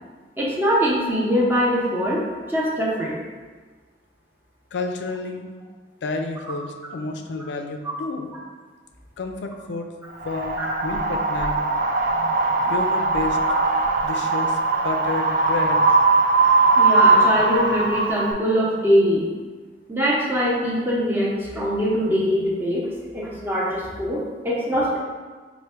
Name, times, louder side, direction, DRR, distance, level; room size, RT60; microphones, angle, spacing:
voice 1, 0.4-2.2 2.5-3.2 10.6-10.7 13.5-13.6 15.4-15.5 15.8-16.0 16.8-19.3 19.9-22.9 23.1-25.0, equal, 10° right, -5 dB, 0.7 m, -22 dB
voice 2, 4.7-5.5 6.0-8.3 9.2-9.9 10.2-11.6 12.7-13.6 14.0-14.6 14.8-15.8, left 3 dB, 85° left, 4 dB, 0.4 m, -30 dB
Wind, 10.2-18.3, right 3 dB, 50° right, 0.4 m, -20 dB
4.4 x 2.2 x 4.3 m, 1.4 s
head